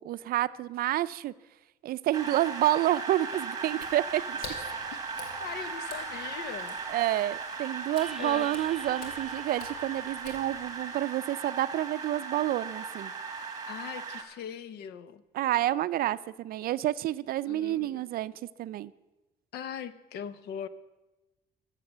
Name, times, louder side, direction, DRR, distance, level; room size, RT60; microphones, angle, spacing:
voice 1, 0.0-1.3 1.8-4.5 6.9-13.1 15.3-18.3 18.6-18.9, right 14 dB, 60° right, 16 dB, 0.4 m, -29 dB
sound 1, 2.1-14.2, right 5 dB, 20° right, 1.8 m, -38 dB
Water / Splash splatter, 3.7-10.9, left 3 dB, 90° left, 2.5 m, -48 dB
voice 2, 5.4-6.8 8.2-8.5 13.7-15.2 17.4-18.0 19.5-20.7, left 8 dB, 75° left, 15 dB, 0.8 m, -40 dB
sound 2, 5.4-10.8, right 3 dB, ahead, 1.0 m, -50 dB
14.0 x 7.4 x 6.7 m, 1.1 s
cardioid pair, 110°, 17 cm